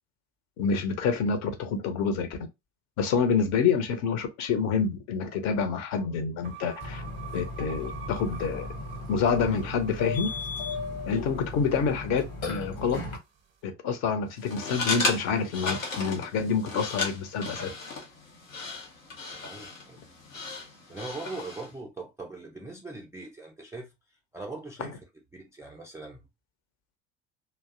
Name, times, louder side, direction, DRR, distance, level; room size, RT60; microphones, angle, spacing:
voice 1, 0.6-2.3 3.0-7.0 7.3-8.7 9.1-10.3 11.1-12.2 12.5-13.0 13.6-17.7 24.8-24.9, left 6 dB, 45° left, 0.6 m, -27 dB
sound 1, 6.4-12.8, right 6 dB, 30° right, 0.7 m, -46 dB
Burping eructation, 6.8-13.2, left 3 dB, 60° left, 1.1 m, -36 dB
sound 2, 14.4-21.7, left 3 dB, 85° left, 0.7 m, -34 dB
voice 2, 19.4-20.0 20.9-23.9 24.3-25.0 25.3-26.3, right 3 dB, 10° right, 0.3 m, -40 dB
2.5 x 2.1 x 2.4 m
figure-of-eight pair, 65°, 39 cm